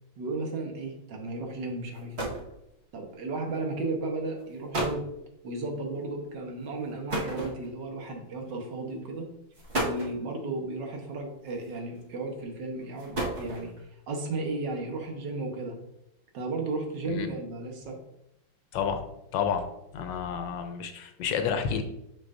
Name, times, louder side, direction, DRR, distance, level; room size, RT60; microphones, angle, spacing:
voice 1, 0.2-2.3 2.9-5.1 5.4-9.3 9.8-13.7 14.1-15.8 16.3-18.0, right 2 dB, 60° right, 2 dB, 1.7 m, -34 dB
sound 1, 1.6-1.7 1.9-2.5 3.5-3.8 4.4-4.5 4.7-5.1 7.1-7.9 8.9-9.0 9.5-10.2 11.5-12.0 12.8-13.8, right 1 dB, 35° right, 1.6 m, -32 dB
voice 2, 19.3-19.6 19.9-21.8, left 7 dB, 70° left, 7 dB, 1.3 m, -30 dB
6.3 x 6.3 x 2.6 m, 0.82 s
omnidirectional pair, 2.2 m